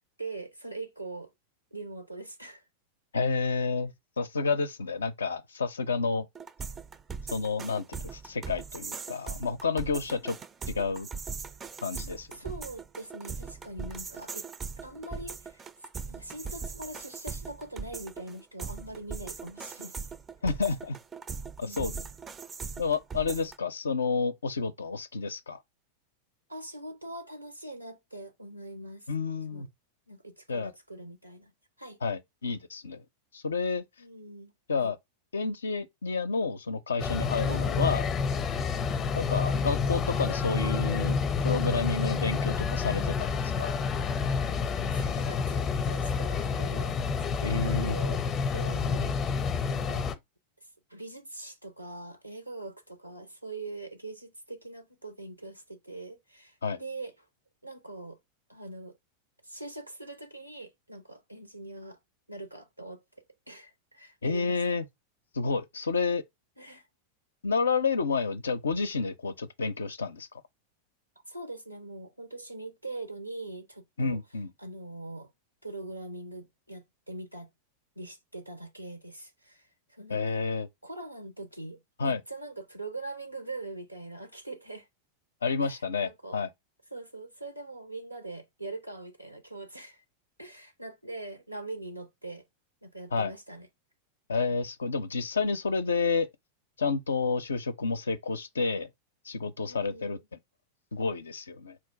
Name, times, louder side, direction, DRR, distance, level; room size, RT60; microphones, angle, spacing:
voice 1, 0.2-1.3 1.7-2.6 10.2-10.3 12.3-14.5 14.8-15.6 16.1-20.0 21.6-22.1 26.5-29.1 29.5-29.7 30.1-31.5 31.8-32.0 34.0-34.5 34.8-34.9 37.5-37.7 44.8-47.0 47.3-48.2 48.5-50.1 50.9-57.1 57.6-58.2 58.5-59.0 59.4-62.0 62.3-64.8 66.6-66.9 71.3-74.2 74.6-75.3 75.6-77.5 78.0-80.4 80.8-84.9 85.6-86.4 86.9-90.0 90.4-92.5 92.8-93.7 99.7-100.2, right 2 dB, 90° right, 0.7 m, -42 dB
voice 2, 3.1-6.3 7.3-10.4 10.7-11.1 11.8-12.3 20.4-21.0 21.6-21.9 22.8-25.6 29.1-29.7 30.5-30.7 32.0-33.0 33.3-33.8 34.7-35.0 35.3-38.0 39.1-43.7 47.4-48.0 56.6-56.8 64.2-64.9 65.3-66.2 67.4-70.3 74.0-74.5 80.1-80.7 82.0-82.2 85.4-86.5 93.1-93.3 94.3-96.3 96.8-98.9 99.2-100.2 100.9-101.8, left 4 dB, 70° left, 0.4 m, -30 dB
sound 1, 6.3-23.6, right 5 dB, 20° right, 0.4 m, -40 dB
sound 2, 37.0-50.1, left 5 dB, 25° left, 0.6 m, -29 dB
4.4 x 2.4 x 4.5 m
figure-of-eight pair, 90°, 0 cm